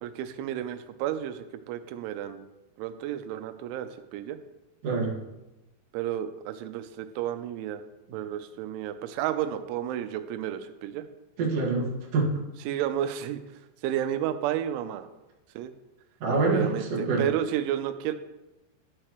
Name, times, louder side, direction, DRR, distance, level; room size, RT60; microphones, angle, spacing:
voice 1, 0.0-2.5 2.8-4.4 5.9-7.8 8.1-11.1 12.7-13.4 13.8-15.1 15.6-15.7 16.4-18.1, right 11 dB, 85° right, 9 dB, 3.0 m, -31 dB
voice 2, 4.8-5.2 11.4-12.3 16.2-17.3, right 3 dB, 65° right, -3 dB, 1.5 m, -26 dB
12.0 x 6.5 x 3.0 m, 1.0 s
omnidirectional pair, 5.4 m